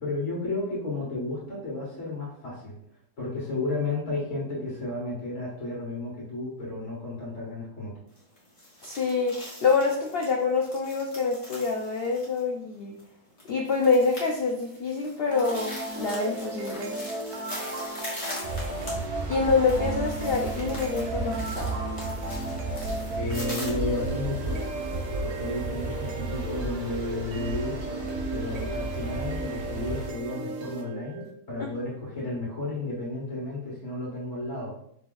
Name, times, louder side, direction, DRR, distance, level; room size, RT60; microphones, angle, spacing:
voice 1, 0.0-2.8 3.2-7.9 23.2-24.6 25.2-27.8 28.3-34.7, left 2 dB, 50° left, -6 dB, 1.6 m, -33 dB
sound 1, 8.1-23.7, left 1 dB, 25° left, 1.4 m, -42 dB
voice 2, 8.8-13.0 13.5-16.9 19.3-21.8, left 4 dB, 85° left, 0 dB, 0.5 m, -26 dB
sound 2, 15.3-31.3, right 2 dB, 70° right, 1.2 m, -35 dB
sound 3, 18.4-30.1, right 2 dB, 40° right, 0.8 m, -34 dB
4.0 x 2.9 x 3.8 m, 0.68 s
omnidirectional pair, 1.7 m